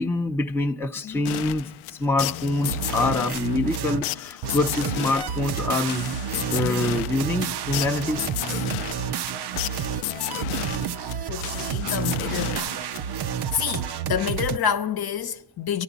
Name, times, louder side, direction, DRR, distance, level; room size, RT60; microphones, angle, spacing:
voice 1, 0.0-6.1 6.5-8.2 11.2-11.3, left 2 dB, 5° left, 0.6 m, -25 dB
sound 1, 1.3-13.4, left 15 dB, 90° left, 0.5 m, -33 dB
sound 2, 2.6-4.1 4.4-14.6, right 8 dB, 60° right, 0.6 m, -30 dB
voice 2, 11.3-12.7 13.5-15.8, left 8 dB, 50° left, 0.9 m, -28 dB
24.0 x 11.5 x 4.0 m
cardioid pair, 100°, 47 cm